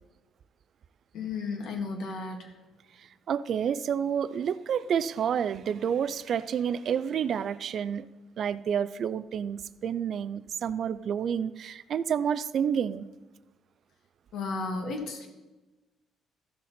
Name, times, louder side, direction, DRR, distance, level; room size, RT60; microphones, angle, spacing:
voice 1, 1.1-2.5 14.3-15.3, left 4 dB, 65° left, 3 dB, 1.9 m, -33 dB
voice 2, 3.3-8.1 8.4-13.1, right 8 dB, 50° right, 16 dB, 0.4 m, -29 dB
15.0 x 6.5 x 4.3 m, 1.1 s
cardioid pair, 140°, 0 cm